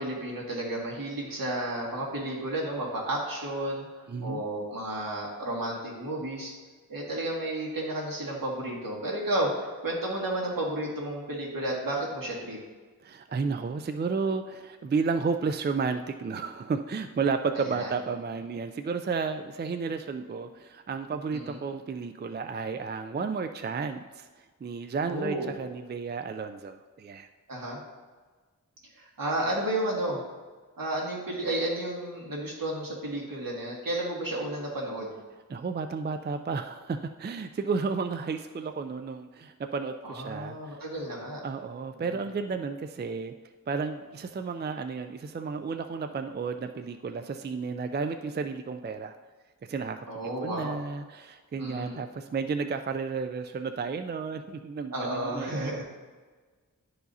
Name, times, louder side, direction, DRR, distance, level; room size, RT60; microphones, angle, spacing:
voice 1, 0.0-6.5 6.9-12.6 17.5-17.9 21.3-21.6 25.1-25.5 27.5-27.8 29.0-30.2 30.8-35.1 40.0-41.4 50.1-50.7 51.6-52.0 54.9-55.8, right 1 dB, 75° right, -4 dB, 2.0 m, -32 dB
voice 2, 4.1-4.4 13.0-27.3 35.5-40.8 41.4-43.3 43.7-49.2 49.6-55.8, right 5 dB, 30° right, 8 dB, 0.4 m, -32 dB
11.5 x 4.8 x 2.7 m, 1.4 s
wide cardioid pair, 65°, 34 cm